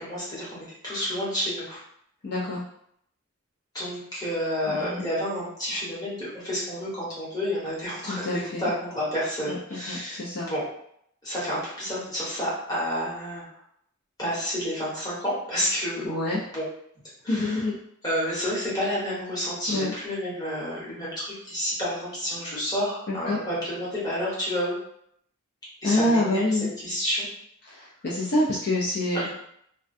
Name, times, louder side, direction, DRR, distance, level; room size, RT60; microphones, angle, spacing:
voice 1, 0.0-1.8 3.7-10.2 10.4-10.6 11.2-13.5 14.2-16.1 16.5-16.6 17.2-17.6 18.0-24.7 25.8-26.4 26.8-27.3 29.1-29.3, equal, 20° left, -8 dB, 1.0 m, -30 dB
voice 2, 2.2-2.6 4.7-5.0 8.0-8.7 9.5-9.6 9.9-10.5 16.0-16.4 17.3-17.8 19.7-19.9 23.1-23.4 25.8-26.7 27.6-29.3, left 1 dB, 50° left, -6 dB, 0.4 m, -26 dB
2.3 x 2.2 x 2.5 m, 0.69 s
head